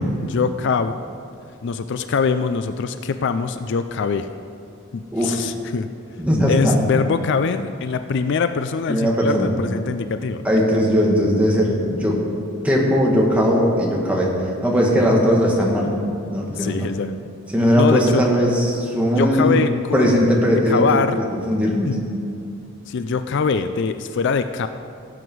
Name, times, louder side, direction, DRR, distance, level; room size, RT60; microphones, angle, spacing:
voice 1, 0.2-1.0 1.6-4.3 4.9-5.9 6.5-10.4 16.5-17.1 17.7-18.3 19.0-20.2 20.7-21.2 21.9-22.0 22.9-24.7, left 5 dB, 55° left, 10 dB, 0.4 m, -23 dB
voice 2, 6.2-6.8 8.9-9.5 10.4-12.2 12.6-14.3 14.6-15.9 16.3-16.9 17.5-19.6 19.9-22.0, equal, 5° right, -3 dB, 1.9 m, -19 dB
17.0 x 8.0 x 4.7 m, 2.6 s
head